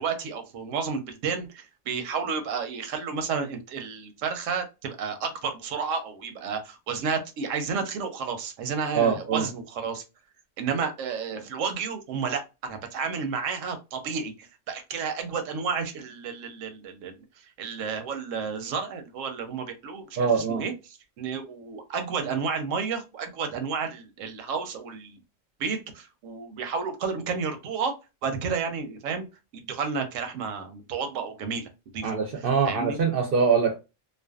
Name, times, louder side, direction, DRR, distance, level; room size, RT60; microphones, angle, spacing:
voice 1, 0.0-10.0 10.6-17.2 17.6-25.2 25.6-27.9 28.2-29.3 29.5-32.1 32.6-33.0, right 5 dB, 90° right, 1.0 m, -31 dB
voice 2, 8.9-9.5 20.2-20.6 32.0-33.7, right 5 dB, 60° right, 0.6 m, -23 dB
2.5 x 2.2 x 2.3 m
omnidirectional pair, 1.3 m